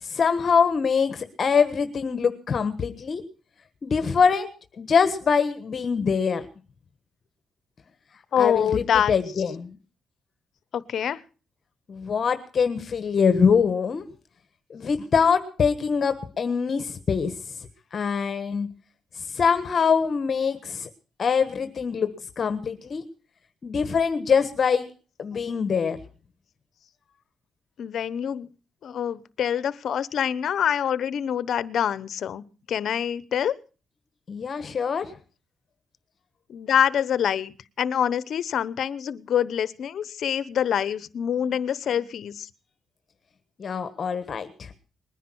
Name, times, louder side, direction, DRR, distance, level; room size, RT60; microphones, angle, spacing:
voice 1, 0.0-3.2 3.8-6.5 8.4-9.8 11.9-14.1 14.7-17.4 17.9-18.7 19.1-20.9 21.2-23.0 23.6-24.9 25.2-26.0 34.3-35.1 43.6-44.7, left 6 dB, 50° left, 10 dB, 1.4 m, -24 dB
voice 2, 8.3-9.1 10.7-11.2 27.8-28.5 28.8-33.5 36.5-42.5, left 9 dB, 70° left, 18 dB, 0.9 m, -25 dB
20.5 x 10.0 x 6.3 m, 0.38 s
cardioid pair, 80°, 0 cm